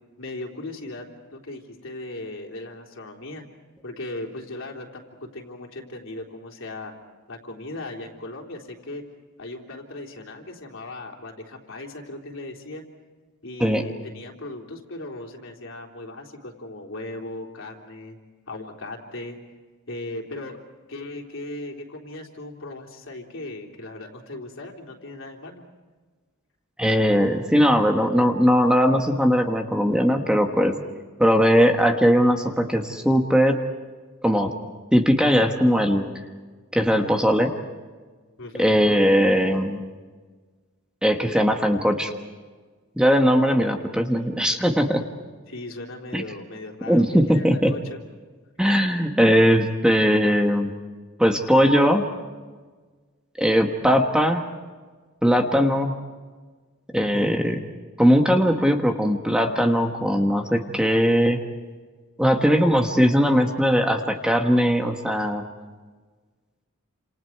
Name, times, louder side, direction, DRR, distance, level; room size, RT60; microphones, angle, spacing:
voice 1, 0.2-1.1 1.3-3.4 3.8-6.9 7.3-9.0 9.4-12.8 13.4-18.2 18.5-19.4 19.9-20.6 20.9-25.6 38.4-38.8 45.5-48.0, left 2 dB, 65° left, 1 dB, 3.7 m, -37 dB
voice 2, 26.8-30.8 31.2-33.6 34.2-34.5 34.9-36.1 36.7-37.5 38.6-39.8 41.0-42.1 43.0-45.0 46.1-46.2 46.9-47.7 48.6-50.7 51.2-52.1 53.4-54.4 55.2-55.9 56.9-57.6 58.0-61.4 62.2-65.4, equal, 5° right, 3 dB, 1.3 m, -19 dB
30.0 x 27.5 x 4.7 m, 1.4 s
head